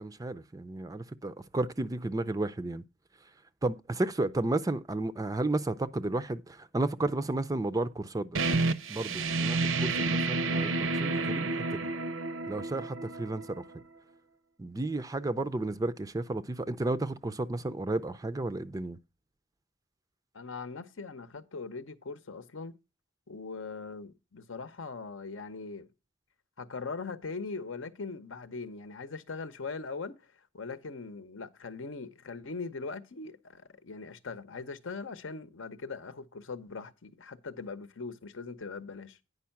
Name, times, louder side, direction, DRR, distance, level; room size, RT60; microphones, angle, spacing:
voice 1, 0.0-2.8 3.6-8.4 8.9-11.9 12.5-13.6 14.6-19.0, right 2 dB, 20° right, 0.4 m, -32 dB
sound 1, 8.3-13.8, right 3 dB, 75° right, 0.7 m, -30 dB
voice 2, 20.3-22.7 23.3-25.9 26.6-30.2 30.5-39.2, left 4 dB, 70° left, 0.8 m, -40 dB
9.5 x 5.4 x 5.7 m
head